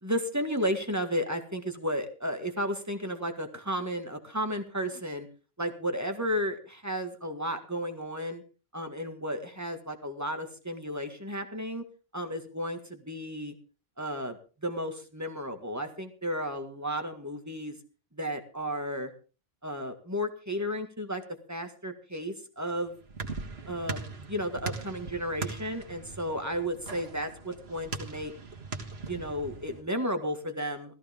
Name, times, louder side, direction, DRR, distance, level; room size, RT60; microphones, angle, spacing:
voice 1, 0.0-5.3 5.6-8.4 8.7-11.8 12.1-13.5 14.0-14.4 14.6-17.8 18.1-19.1 19.6-21.2 21.5-22.9 23.7-24.0 24.3-28.3 29.0-30.9, equal, 15° right, 5 dB, 1.8 m, -33 dB
sound 1, 22.6-29.8, right 4 dB, 80° right, 1.9 m, -40 dB
16.0 x 14.5 x 3.6 m, 0.36 s
omnidirectional pair, 1.1 m